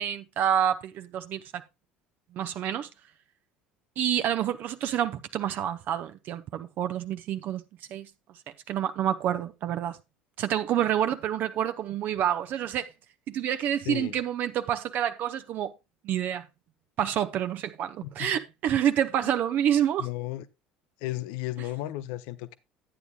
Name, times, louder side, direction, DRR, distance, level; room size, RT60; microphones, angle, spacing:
voice 1, 0.0-1.6 2.3-2.9 4.0-7.6 7.9-8.1 8.7-10.0 10.4-12.9 13.3-15.7 16.0-16.5 17.0-20.1, right 10 dB, 45° right, 0.6 m, -28 dB
voice 2, 13.9-14.2 18.0-18.3 19.2-19.3 20.0-20.5 21.0-22.6, left 16 dB, 60° left, 0.7 m, -34 dB
12.5 x 9.3 x 2.3 m
figure-of-eight pair, 65°, 4 cm